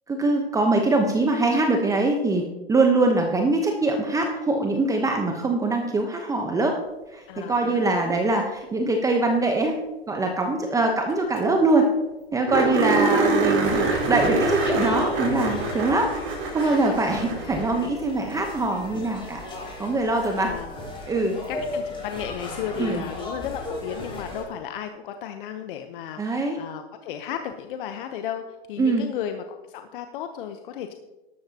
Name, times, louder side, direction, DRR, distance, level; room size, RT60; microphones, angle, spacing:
voice 1, 0.1-2.4 2.7-6.8 7.1-9.7 10.1-11.9 12.3-16.1 16.5-19.4 19.8-20.5 21.1-21.4 22.8-23.0 26.2-26.6 28.8-29.1, right 2 dB, 10° right, 3 dB, 1.0 m, -23 dB
voice 2, 7.3-8.1 10.7-10.8 12.7-12.9 20.4-20.8 21.5-30.9, left 9 dB, 55° left, 7 dB, 1.0 m, -34 dB
sound 1, 11.1-11.2 11.4-11.5 11.8-11.9 12.5-17.9 20.2-20.3 23.2-23.3, right 3 dB, 40° right, 4.6 m, -25 dB
sound 2, 13.6-24.4, left 1 dB, 15° left, 4.1 m, -35 dB
13.0 x 12.5 x 2.9 m, 1.1 s
hypercardioid pair, 125°, 32 cm